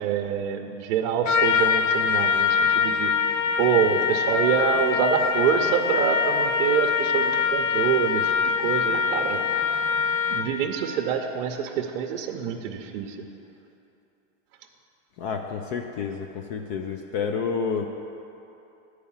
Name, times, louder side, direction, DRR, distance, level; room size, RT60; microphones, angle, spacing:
voice 1, 0.0-3.1 3.6-9.4 10.3-13.2, right 8 dB, 50° right, 3 dB, 0.7 m, -26 dB
Trumpet, 1.3-10.6, left 6 dB, 85° left, 0.7 m, -24 dB
voice 2, 15.2-17.9, left 6 dB, 40° left, 4 dB, 0.4 m, -29 dB
9.3 x 4.8 x 7.2 m, 2.8 s
supercardioid pair, 150°, 37 cm